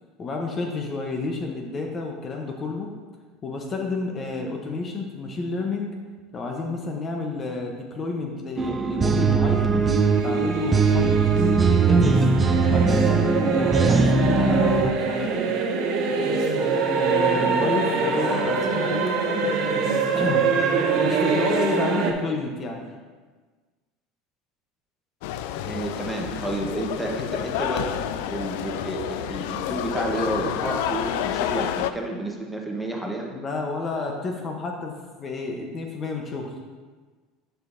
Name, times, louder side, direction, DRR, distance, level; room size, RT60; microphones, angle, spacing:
voice 1, 0.2-2.9 3.4-5.9 6.3-9.7 10.2-12.3 12.7-15.4 17.0-19.2 20.1-20.5 21.0-22.9 33.3-36.5, left 3 dB, 35° left, 2 dB, 0.8 m, -30 dB
sound 1, 8.6-14.9, right 4 dB, 20° right, 0.5 m, -20 dB
sound 2, 9.7-22.1, right 5 dB, 60° right, 0.9 m, -24 dB
sound 3, 25.2-31.9, left 10 dB, 75° left, 0.3 m, -29 dB
voice 2, 25.6-33.3, right 1 dB, ahead, -1 dB, 1.0 m, -30 dB
10.5 x 4.7 x 2.6 m, 1.4 s
supercardioid pair, 110°, 0 cm